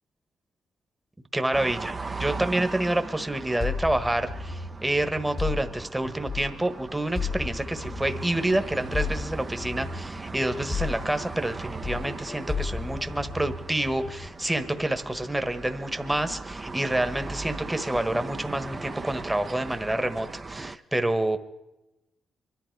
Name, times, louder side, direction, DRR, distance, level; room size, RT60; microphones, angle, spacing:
voice 1, 1.3-21.4, right 1 dB, 10° right, 9 dB, 1.3 m, -28 dB
sound 1, 1.5-20.8, right 3 dB, 35° right, 0.8 m, -39 dB
sound 2, 3.6-6.7 7.2-11.6 11.8-14.3, left 4 dB, 50° left, 1.3 m, -34 dB
25.0 x 11.5 x 4.7 m, 0.96 s
supercardioid pair, 50°, 0 cm